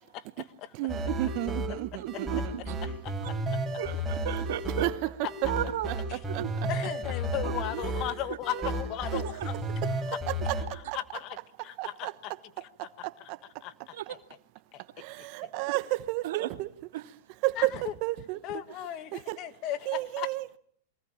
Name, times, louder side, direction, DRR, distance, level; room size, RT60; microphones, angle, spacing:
voice 1, 0.1-0.7 2.8-3.4 6.1-6.2 6.7-9.6 9.8-10.2 10.7-11.4 11.6-12.3 12.6-13.3 13.6-14.2 14.7-14.8 15.4-15.7 17.6-17.9 18.4-20.3, left 12 dB, 45° left, 1.4 m, -37 dB
voice 2, 0.7-3.0 4.8-5.5 5.9-6.7 7.7-7.9 8.5-8.7 9.8-9.9 10.3-11.0 11.8-12.1 12.8-13.4 15.0-16.7 17.4-18.4 19.1-19.4 19.9-20.5, right 19 dB, 50° right, 1.1 m, -32 dB
sound 1, 0.9-10.6, right 1 dB, 15° right, 5.4 m, -33 dB
voice 3, 1.8-2.4 3.2-3.3 3.8-4.9 5.5-5.9 6.4-6.5 7.4-7.5 9.1-9.5 13.9-14.0 16.2-16.5 16.9-17.0, right 13 dB, 70° right, 2.2 m, -34 dB
23.5 x 18.0 x 8.7 m
hypercardioid pair, 125°, 0 cm